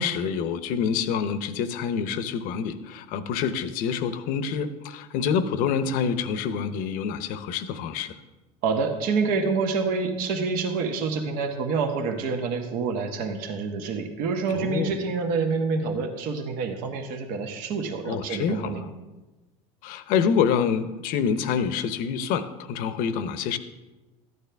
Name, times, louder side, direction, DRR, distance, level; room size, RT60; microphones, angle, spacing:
voice 1, 0.0-8.1 14.5-14.9 18.1-18.8 19.8-23.6, left 7 dB, 65° left, 12 dB, 0.8 m, -27 dB
voice 2, 8.6-18.8, right 4 dB, 60° right, 4 dB, 1.4 m, -27 dB
13.5 x 9.5 x 3.4 m, 1.1 s
supercardioid pair, 105°, 16 cm